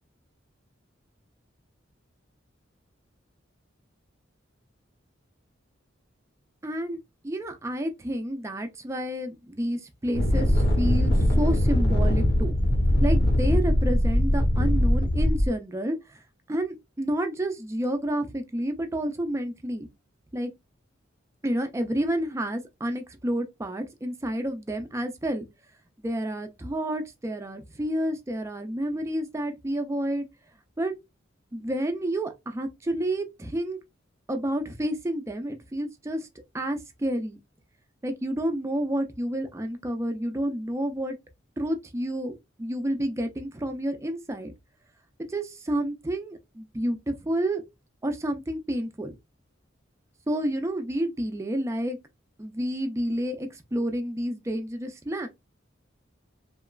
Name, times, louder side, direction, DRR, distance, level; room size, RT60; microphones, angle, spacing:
voice 1, 6.6-7.0 7.2-12.5 13.0-16.2 16.5-19.9 20.3-20.5 21.4-25.5 26.0-30.2 30.8-30.9 31.5-33.8 34.3-36.3 36.5-37.4 38.0-41.2 41.6-44.5 45.3-47.6 48.0-49.1 50.3-52.0 52.4-55.3, right 1 dB, 15° right, 0.4 m, -30 dB
sound 1, 10.1-15.5, equal, 55° left, 0.8 m, -21 dB
2.9 x 2.3 x 2.3 m
head